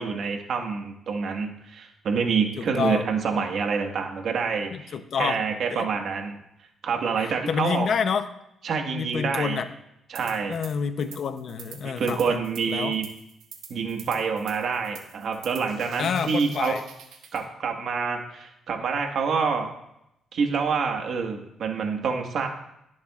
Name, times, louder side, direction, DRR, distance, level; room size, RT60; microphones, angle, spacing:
voice 1, 0.0-6.4 6.8-7.9 8.6-9.6 10.1-10.5 11.8-13.1 13.7-16.7 17.3-19.7 20.3-22.5, right 5 dB, 65° right, 3 dB, 1.6 m, -27 dB
voice 2, 2.6-3.1 4.7-5.4 5.7-5.9 7.2-8.3 8.9-9.7 10.5-12.4 12.7-12.9 16.0-16.8, left 6 dB, 60° left, 10 dB, 0.7 m, -28 dB
sound 1, 10.1-10.7 11.0-17.4, right 7 dB, 80° right, 1.5 m, -46 dB
17.0 x 7.2 x 2.5 m, 0.82 s
cardioid pair, 90°, 0 cm